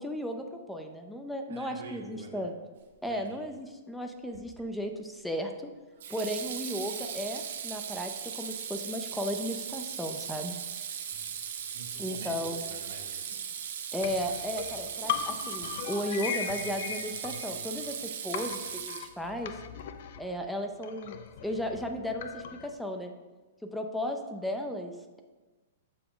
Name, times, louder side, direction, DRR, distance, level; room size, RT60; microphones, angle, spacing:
voice 1, 0.0-2.5 3.0-5.7 6.1-10.5 12.0-12.6 13.9-19.5 20.2-23.1 23.7-25.2, equal, ahead, 4 dB, 0.4 m, -35 dB
voice 2, 1.5-2.5 3.1-3.4 11.1-13.4, right 4 dB, 90° right, 0 dB, 1.5 m, -48 dB
Water tap faucet / Sink (filling or washing), 4.3-4.7 6.0-19.4, right 8 dB, 70° right, 0.7 m, -38 dB
sound 1, 14.0-18.0 18.3-22.7, left 9 dB, 60° left, 0.5 m, -38 dB
6.9 x 4.9 x 3.8 m, 1.2 s
hypercardioid pair, 145°, 0 cm